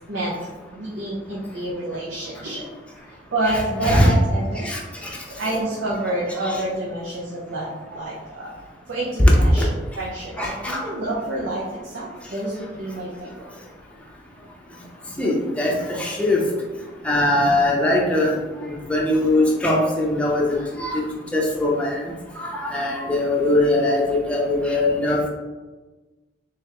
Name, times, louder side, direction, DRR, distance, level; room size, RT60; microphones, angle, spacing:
voice 1, 0.0-2.7 3.1-4.7 5.1-8.5 8.9-13.5 16.1-16.3, right 1 dB, 90° right, -6 dB, 0.7 m, -28 dB
voice 2, 3.8-4.1 4.6-4.8 6.4-6.6 9.6-9.7 10.4-10.8 15.2-16.4 17.0-18.3 18.9-21.0 21.3-22.0 22.4-25.2, left 1 dB, 5° left, -3 dB, 0.6 m, -21 dB
3.5 x 3.4 x 2.9 m, 1.2 s
head